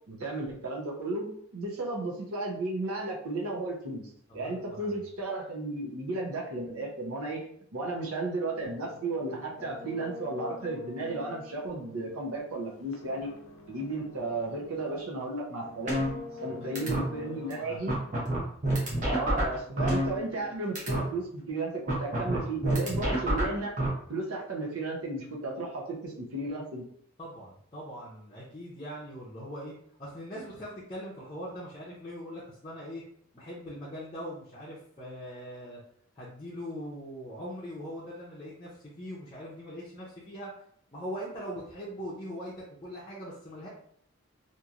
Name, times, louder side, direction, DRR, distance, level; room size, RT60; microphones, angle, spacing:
voice 1, 0.1-7.5 7.7-13.3 13.7-16.0 16.4-17.9 19.0-23.7 24.1-26.8, right 2 dB, 85° right, -1 dB, 0.7 m, -34 dB
voice 2, 4.3-5.0 16.4-16.8 17.2-18.2 27.2-33.0 33.3-35.8 36.1-40.6 40.9-43.7, equal, 25° left, -8 dB, 0.5 m, -41 dB
sound 1, 8.5-15.2 15.6-17.8, left 3 dB, 65° left, 0.5 m, -45 dB
sound 2, 15.9-16.5 16.8-17.0 17.5-17.6 17.9-20.5 20.8-21.0 21.9-23.9, right 1 dB, 35° right, 0.8 m, -28 dB
3.0 x 2.5 x 2.4 m, 0.64 s
head